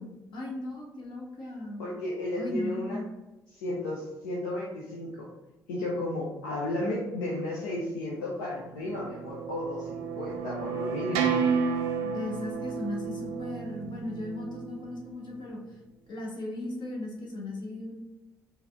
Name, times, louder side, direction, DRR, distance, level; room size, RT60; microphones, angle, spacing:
voice 1, 0.0-1.8 2.4-3.1 12.0-15.8 16.1-17.9, left 1 dB, 50° left, -1 dB, 1.1 m, -37 dB
voice 2, 1.8-3.0 3.5-5.3 5.7-11.3, left 1 dB, 70° left, -5 dB, 0.6 m, -33 dB
sound 1, 8.6-15.1, right 6 dB, 65° right, 0.4 m, -32 dB
4.6 x 2.0 x 3.4 m, 1.0 s
figure-of-eight pair, 45°, 10 cm